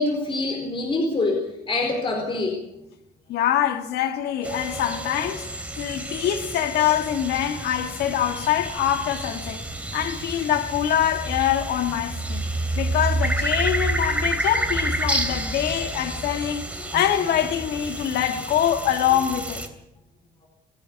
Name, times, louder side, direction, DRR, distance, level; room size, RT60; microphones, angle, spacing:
voice 1, 0.0-2.6 16.8-16.9, left 2 dB, 30° left, 4.3 m, -25 dB
voice 2, 3.3-5.5 5.8-9.7 9.9-12.5 12.8-16.7 16.9-19.6, left 10 dB, 75° left, 1.6 m, -24 dB
sound 1, 4.4-19.7, right 1 dB, 10° right, 3.1 m, -29 dB
27.5 x 10.0 x 9.3 m
cardioid pair, 110°, 17 cm